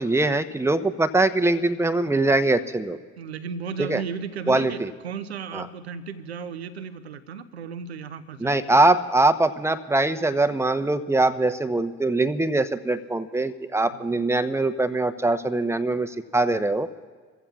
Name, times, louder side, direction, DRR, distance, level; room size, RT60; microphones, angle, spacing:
voice 1, 0.0-3.0 3.8-4.0 4.5-4.9 5.5-5.7 8.4-16.9, right 2 dB, 10° right, 10 dB, 0.9 m, -22 dB
voice 2, 3.2-8.8, right 6 dB, 85° right, 12 dB, 0.7 m, -35 dB
28.0 x 15.0 x 2.4 m, 1.5 s
figure-of-eight pair, 50°, 31 cm